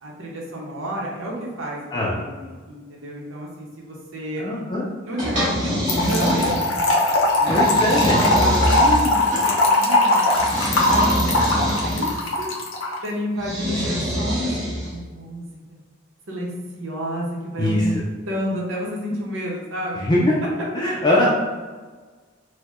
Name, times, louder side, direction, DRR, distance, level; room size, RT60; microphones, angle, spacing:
voice 1, 0.0-4.4 5.0-6.7 7.3-11.4 11.8-12.5 13.0-15.5 16.3-17.9 18.3-20.2, equal, 85° right, -3 dB, 0.8 m, -30 dB
voice 2, 4.4-4.8 7.5-8.1 17.6-17.9 20.0-20.4 20.7-21.3, left 1 dB, 20° left, -6 dB, 0.4 m, -21 dB
sound 1, 5.2-6.9 7.5-9.5 10.3-12.2 13.4-15.0, equal, 40° right, 1.3 m, -25 dB
Trickle dribble / Fill (with liquid), 5.9-13.0, left 1 dB, 85° left, 0.6 m, -20 dB
4.4 x 2.1 x 2.4 m, 1.4 s
head